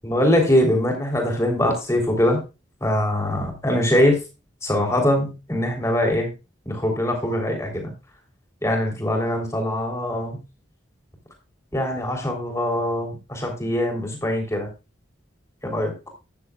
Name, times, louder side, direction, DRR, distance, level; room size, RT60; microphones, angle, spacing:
voice 1, 0.0-2.4 2.8-4.2 4.6-6.3 6.7-7.9 8.6-10.4 11.7-14.7 15.6-15.9, left 1 dB, 15° left, 2 dB, 3.5 m, -22 dB
13.5 x 9.9 x 2.4 m, 0.28 s
head